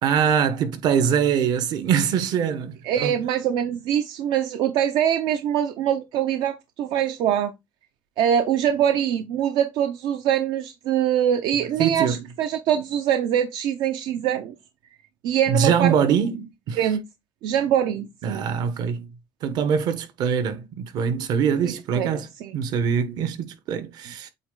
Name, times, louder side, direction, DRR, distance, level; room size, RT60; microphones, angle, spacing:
voice 1, 0.0-3.1 11.8-12.2 15.5-16.8 18.2-19.1 19.4-22.3 22.5-24.3, right 7 dB, 60° right, 1.2 m, -23 dB
voice 2, 2.8-7.5 8.2-14.5 15.2-15.9 16.8-17.0 17.4-18.5 21.6-22.1 22.4-22.5, right 9 dB, 80° right, 0.9 m, -23 dB
8.4 x 3.2 x 3.9 m
cardioid pair, 140°, 8 cm